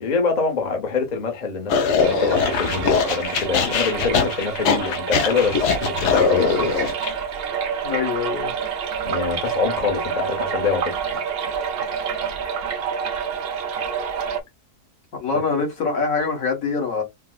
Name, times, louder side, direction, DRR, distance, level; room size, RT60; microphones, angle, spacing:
voice 1, 0.0-1.7 2.0-6.7 9.1-11.1, left 5 dB, 40° left, 0.7 m, -25 dB
sound 1, 1.7-7.1, left 5 dB, 85° left, 1.3 m, -21 dB
sound 2, 2.0-14.4, right 7 dB, 60° right, 0.6 m, -28 dB
voice 2, 7.8-8.5 15.2-17.0, left 5 dB, 60° left, 1.6 m, -24 dB
4.4 x 2.0 x 2.3 m
omnidirectional pair, 1.7 m